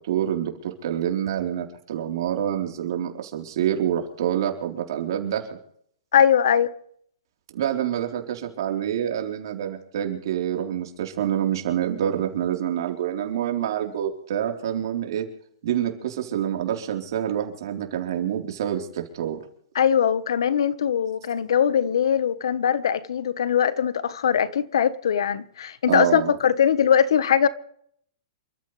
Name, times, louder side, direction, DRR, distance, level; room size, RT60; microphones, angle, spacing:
voice 1, 0.1-5.5 7.5-15.3 15.6-19.4 25.9-26.4, right 10 dB, 60° right, 4.0 m, -27 dB
voice 2, 6.1-6.7 19.7-27.5, left 8 dB, 75° left, 1.3 m, -21 dB
28.5 x 14.5 x 3.4 m
hypercardioid pair, 150°, 3 cm